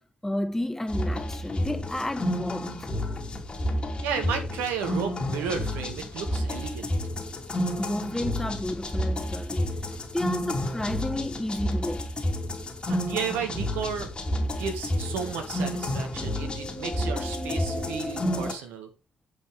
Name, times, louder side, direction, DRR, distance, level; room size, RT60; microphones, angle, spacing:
voice 1, 0.2-2.9 7.8-12.1, left 1 dB, 15° left, 1.1 m, -32 dB
sound 1, 0.9-18.5, left 1 dB, 30° left, 2.6 m, -30 dB
voice 2, 4.0-6.9 12.9-14.1 14.6-18.9, right 6 dB, 70° right, 1.8 m, -33 dB
8.2 x 5.6 x 5.0 m
hypercardioid pair, 45°, 3 cm